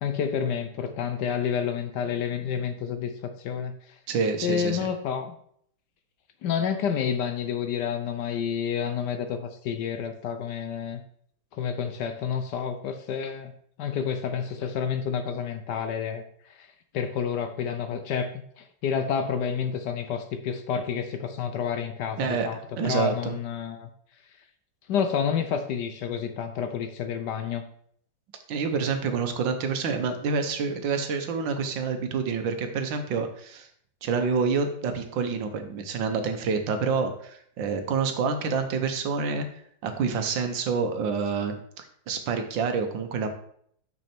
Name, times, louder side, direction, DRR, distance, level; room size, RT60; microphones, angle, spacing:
voice 1, 0.0-3.7 4.4-5.4 6.4-11.0 11.5-13.5 13.8-16.2 16.5-16.7 16.9-23.9 24.9-27.6, left 7 dB, 70° left, 8 dB, 1.1 m, -29 dB
voice 2, 4.1-4.8 22.2-22.5 22.8-23.4 28.5-33.7 34.0-39.5 39.8-43.3, right 5 dB, 70° right, 7 dB, 1.6 m, -27 dB
6.4 x 6.0 x 4.4 m, 0.64 s
omnidirectional pair, 2.1 m